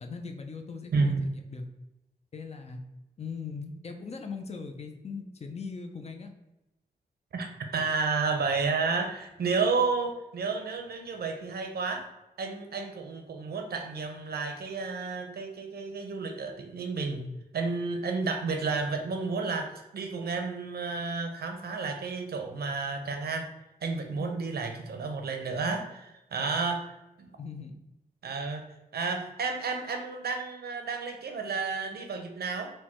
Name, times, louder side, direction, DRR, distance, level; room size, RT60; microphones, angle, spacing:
voice 1, 0.0-1.1 1.5-1.6 2.3-2.8 3.2-6.3 24.1-24.3 27.4-27.8, left 4 dB, 45° left, 5 dB, 0.5 m, -39 dB
voice 2, 0.9-1.2 7.3-12.0 12.4-23.5 23.8-27.3 28.2-28.6 28.9-32.7, right 4 dB, 85° right, 5 dB, 0.6 m, -31 dB
4.4 x 2.2 x 4.3 m, 0.96 s
wide cardioid pair, 125°, 16 cm